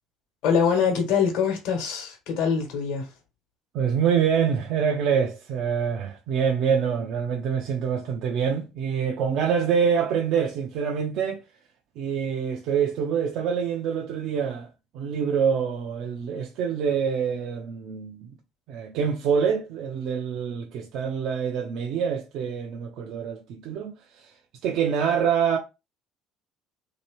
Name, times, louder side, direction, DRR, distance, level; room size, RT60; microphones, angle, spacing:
voice 1, 0.4-3.1, left 6 dB, 75° left, 1.0 m, -24 dB
voice 2, 3.7-11.4 12.0-14.7 14.9-18.4 18.7-24.3 24.6-25.6, right 7 dB, 65° right, 0.5 m, -26 dB
3.0 x 2.8 x 3.0 m
hypercardioid pair, 65°, 0 cm